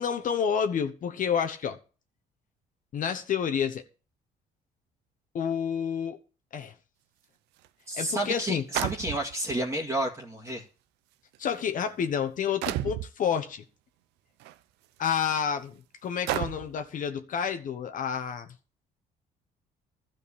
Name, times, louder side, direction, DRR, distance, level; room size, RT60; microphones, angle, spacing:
voice 1, 0.0-1.8 2.9-3.8 5.3-6.2 6.5-6.7 7.9-8.6 11.4-13.6 15.0-18.5, left 7 dB, 50° left, 1.1 m, -29 dB
sound 1, 7.6-7.7 8.7-9.5 10.5-10.6 11.4-11.6 12.6-13.1 14.4-14.5 15.2-15.3 16.3-16.8, right 14 dB, 90° right, 0.7 m, -31 dB
voice 2, 7.9-10.6, right 1 dB, 15° right, 2.0 m, -31 dB
12.5 x 5.3 x 8.6 m
cardioid pair, 110°, 17 cm